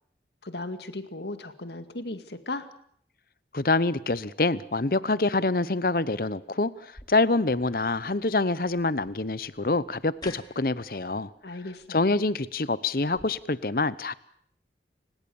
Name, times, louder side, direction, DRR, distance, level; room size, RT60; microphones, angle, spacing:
voice 1, 0.4-2.7 11.4-12.0, left 2 dB, 75° left, 9 dB, 2.1 m, -36 dB
voice 2, 3.5-11.3 11.9-14.1, left 3 dB, 55° left, 17 dB, 0.9 m, -26 dB
sound 1, 6.9-13.2, left 2 dB, 25° left, 3.0 m, -52 dB
29.5 x 17.5 x 7.1 m, 0.65 s
head